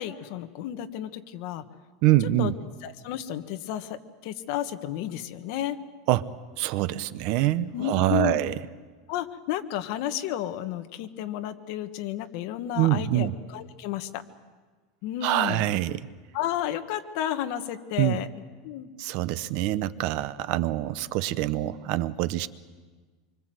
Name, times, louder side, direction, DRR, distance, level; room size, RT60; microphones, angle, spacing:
voice 1, 0.0-1.6 2.4-2.5 2.8-4.0 4.2-5.8 7.7-8.4 9.1-14.2 15.0-15.7 16.3-18.3 18.6-18.9, left 11 dB, 55° left, 8 dB, 1.5 m, -32 dB
voice 2, 2.0-2.5 6.1-6.3 6.6-8.5 12.7-13.3 15.2-16.0 18.0-18.2 19.0-22.5, right 15 dB, 50° right, 15 dB, 0.9 m, -25 dB
26.0 x 25.0 x 7.9 m, 1.4 s
supercardioid pair, 165°, 2 cm